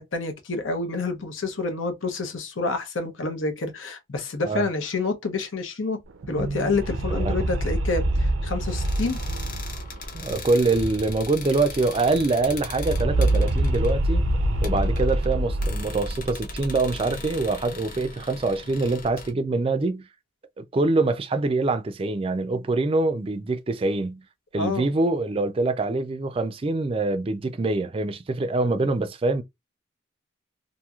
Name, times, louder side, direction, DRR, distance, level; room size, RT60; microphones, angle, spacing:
voice 1, 0.0-6.0 6.3-9.2 24.5-24.9, left 3 dB, 85° left, 0.8 m, -28 dB
sound 1, 6.1-11.4 11.7-11.8 12.0-16.4, right 1 dB, 85° right, 0.5 m, -26 dB
voice 2, 7.1-7.5 10.1-14.2 14.6-20.1 20.6-24.2 24.5-29.4, right 3 dB, 30° right, 0.3 m, -24 dB
sound 2, 8.7-19.3, left 2 dB, 45° left, 0.7 m, -39 dB
2.9 x 2.6 x 2.3 m
head